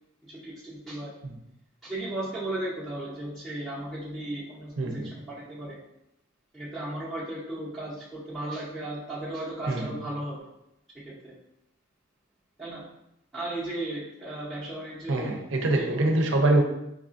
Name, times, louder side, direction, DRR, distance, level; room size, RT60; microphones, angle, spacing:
voice 1, 0.3-1.1 1.8-5.8 6.5-10.5 11.0-11.4 12.6-12.8 13.3-15.3 15.7-16.3, right 1 dB, ahead, -12 dB, 0.7 m, -35 dB
voice 2, 4.8-5.1 9.7-10.0 15.1-16.6, right 2 dB, 65° right, 3 dB, 0.5 m, -24 dB
4.8 x 2.3 x 2.5 m, 0.83 s
head